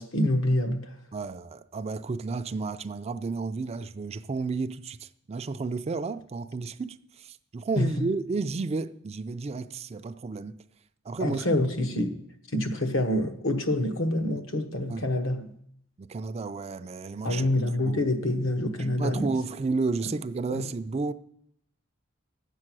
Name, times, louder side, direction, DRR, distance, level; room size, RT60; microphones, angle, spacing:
voice 1, 0.0-1.0 7.8-8.1 11.2-12.2 12.5-15.5 17.2-19.3 20.0-20.1 20.5-20.7, left 1 dB, 70° left, 1.1 m, -27 dB
voice 2, 1.1-10.6 11.0-11.5 11.9-12.0 14.9-15.1 16.0-17.5 17.9-18.0 18.8-21.1, right 4 dB, 30° right, 0.4 m, -32 dB
10.0 x 7.6 x 6.2 m
head